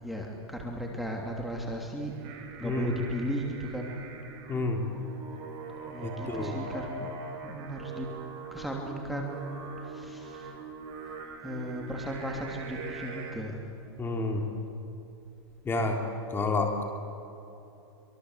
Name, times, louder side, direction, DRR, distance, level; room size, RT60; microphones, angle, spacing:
voice 1, 0.0-2.1 2.6-4.0 5.9-7.1 7.4-8.1 8.5-10.5 11.4-13.6, equal, ahead, 0 dB, 2.9 m, -36 dB
Singing, 2.0-13.3, right 4 dB, 40° right, 5.8 m, -42 dB
voice 2, 4.5-4.9 6.0-6.5 14.0-14.4 15.6-16.0 16.3-16.8, left 3 dB, 15° left, 3 dB, 3.1 m, -29 dB
24.5 x 23.5 x 8.1 m, 2.9 s
hypercardioid pair, 135°, 14 cm